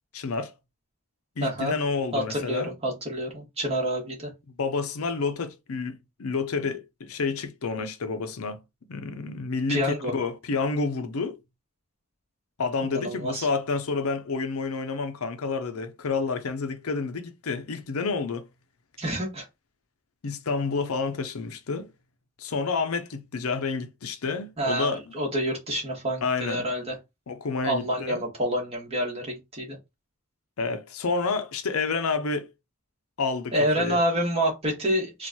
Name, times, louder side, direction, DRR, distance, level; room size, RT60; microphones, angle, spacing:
voice 1, 0.1-0.5 1.4-2.7 4.6-8.6 8.9-11.4 12.6-18.5 20.2-21.9 22.4-25.0 26.2-26.7 27.3-28.2 30.6-32.5 33.2-34.0, left 4 dB, 80° left, 0.6 m, -29 dB
voice 2, 1.4-1.7 2.1-4.3 9.7-10.1 12.8-13.5 19.0-19.4 24.6-26.9 27.6-29.8 33.5-35.3, equal, 30° right, 1.7 m, -28 dB
4.4 x 2.5 x 2.8 m
head